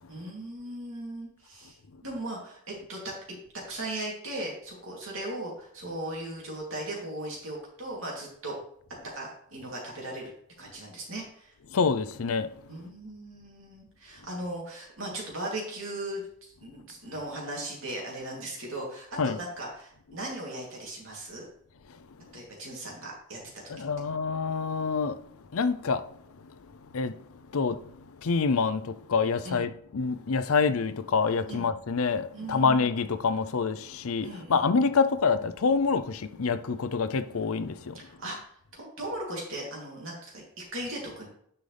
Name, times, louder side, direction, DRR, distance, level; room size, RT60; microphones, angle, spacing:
voice 1, 0.1-1.8 2.0-3.1 3.7-8.5 9.1-10.3 10.6-11.5 12.7-21.5 22.3-23.4 29.4-29.6 31.5-31.7 32.3-32.8 34.2-34.7 37.9-38.4 38.7-41.3, right 1 dB, 60° right, 3.0 m, -38 dB
voice 2, 11.7-12.5 19.2-19.4 23.7-25.2 25.5-26.0 26.9-27.2 27.5-38.0, left 5 dB, 70° left, 0.6 m, -27 dB
10.0 x 5.5 x 3.4 m
head